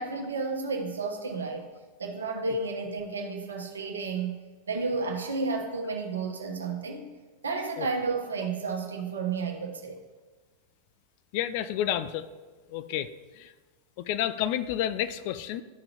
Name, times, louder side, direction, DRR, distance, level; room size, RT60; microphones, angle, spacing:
voice 1, 0.0-1.7 2.0-4.4 4.7-7.1 7.4-10.0, right 4 dB, 70° right, 1 dB, 1.2 m, -32 dB
voice 2, 11.3-12.3 12.7-13.1 13.4-13.5 14.1-15.6, left 11 dB, 45° left, 13 dB, 0.4 m, -30 dB
12.5 x 5.1 x 3.0 m, 1.4 s
figure-of-eight pair, 90°, 0 cm